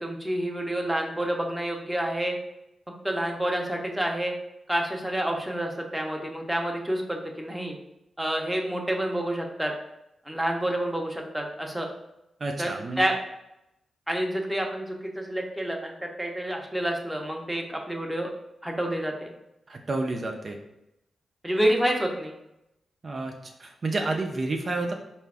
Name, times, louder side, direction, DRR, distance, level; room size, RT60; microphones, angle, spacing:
voice 1, 0.0-2.4 3.0-4.3 4.7-7.8 8.2-9.7 10.3-11.9 12.6-12.7 13.0-13.1 14.1-18.3 18.6-19.3 21.4-22.3, right 1 dB, 5° right, 1 dB, 0.7 m, -28 dB
voice 2, 12.4-13.1 19.7-20.6 23.0-24.9, right 2 dB, 45° right, 2 dB, 0.4 m, -30 dB
4.5 x 2.5 x 3.4 m, 0.86 s
cardioid pair, 75°, 0 cm